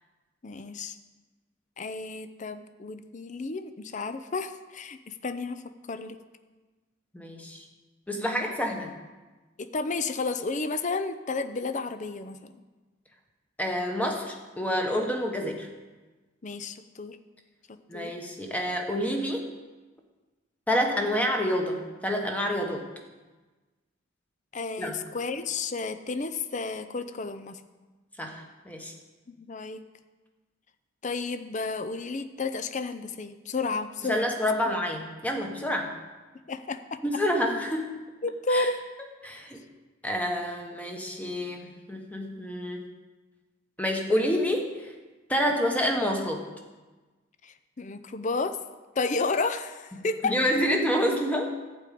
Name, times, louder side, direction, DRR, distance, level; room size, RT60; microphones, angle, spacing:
voice 1, 0.4-1.0 1.8-5.6 5.9-6.2 8.2-8.5 9.6-12.5 16.4-17.2 17.9-18.1 24.5-27.6 29.4-29.8 31.0-34.3 34.6-34.7 36.5-37.0 38.2-38.8 47.4-48.6 49.0-50.3, left 3 dB, 35° left, 10 dB, 0.5 m, -32 dB
voice 2, 7.1-7.6 8.1-9.0 13.6-15.7 17.9-19.4 20.7-22.9 24.8-25.0 28.2-28.9 34.1-35.9 37.0-37.9 38.5-38.7 39.2-39.6 40.0-42.8 43.8-44.9 45.3-46.5 50.2-51.5, equal, 5° left, 2 dB, 1.1 m, -28 dB
11.5 x 5.1 x 8.5 m, 1.3 s
head